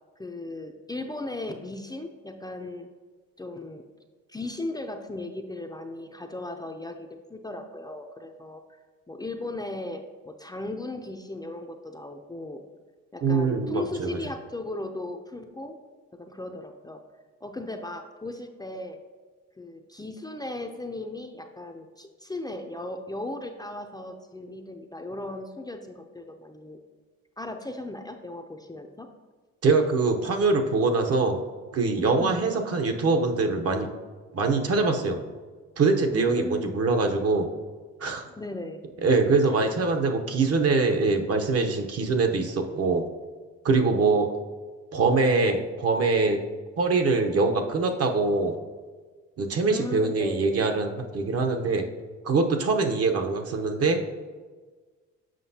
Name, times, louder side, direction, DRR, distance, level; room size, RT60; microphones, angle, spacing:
voice 1, 0.2-2.9 3.4-3.8 4.3-8.6 9.1-12.6 13.1-15.8 16.1-17.0 17.4-19.0 19.6-26.8 27.4-29.1 32.2-32.4 36.1-36.8 38.4-38.8 39.6-39.7 49.6-50.6, left 2 dB, 15° left, 4 dB, 0.5 m, -36 dB
voice 2, 13.2-14.2 29.6-31.4 31.7-33.9 34.3-35.3 35.8-37.5 38.0-38.2 39.0-43.0 43.6-44.3 44.9-46.4 46.8-48.6 49.4-51.8 52.2-54.0, right 3 dB, 50° right, 5 dB, 0.8 m, -23 dB
7.5 x 5.2 x 2.7 m, 1.4 s
cardioid pair, 90°, 30 cm